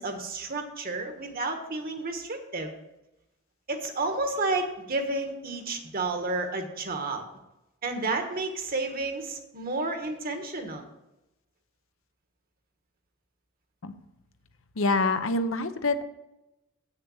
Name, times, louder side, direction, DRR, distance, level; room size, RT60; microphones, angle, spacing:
voice 1, 0.0-2.7 3.7-7.2 7.8-10.9, right 3 dB, 45° right, 5 dB, 1.3 m, -31 dB
voice 2, 14.8-16.1, left 2 dB, 65° left, 10 dB, 0.7 m, -26 dB
8.2 x 6.7 x 7.0 m, 0.94 s
head